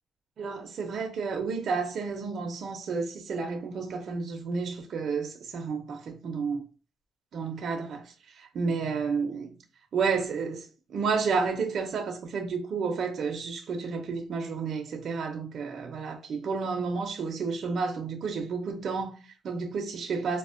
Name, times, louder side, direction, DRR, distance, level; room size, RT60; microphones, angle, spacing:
voice 1, 0.4-6.6 7.3-9.5 9.9-20.4, right 5 dB, 55° right, 0.5 m, -31 dB
4.1 x 2.0 x 2.4 m
cardioid pair, 140°, 0 cm